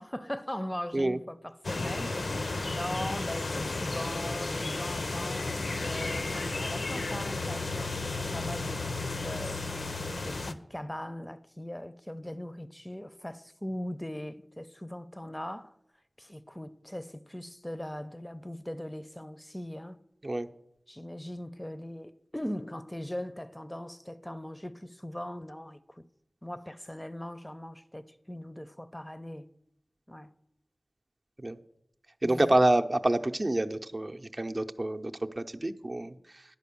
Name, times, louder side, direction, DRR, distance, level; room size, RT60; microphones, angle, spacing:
voice 1, 0.0-2.1 2.7-9.6 10.2-15.7 16.2-20.0 20.9-26.0 26.4-29.5 30.1-30.3 32.2-32.6, left 1 dB, 15° left, 0.5 m, -40 dB
sound 1, 1.6-10.5, left 3 dB, 85° left, 0.5 m, -33 dB
voice 2, 32.2-36.4, right 1 dB, 45° right, 0.6 m, -28 dB
10.5 x 5.1 x 7.0 m
wide cardioid pair, 40°, 0 cm